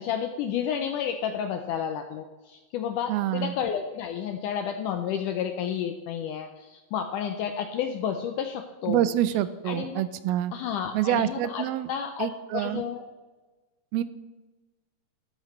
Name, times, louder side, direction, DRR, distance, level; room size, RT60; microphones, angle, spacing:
voice 1, 0.0-9.0 9.3-10.0 10.5-13.0, left 8 dB, 85° left, 6 dB, 1.8 m, -31 dB
voice 2, 3.1-3.5 8.9-10.5 10.9-11.9 12.2-12.8 13.9-14.0, right 12 dB, 85° right, 14 dB, 2.5 m, -26 dB
13.0 x 12.5 x 3.2 m, 1.2 s
omnidirectional pair, 4.3 m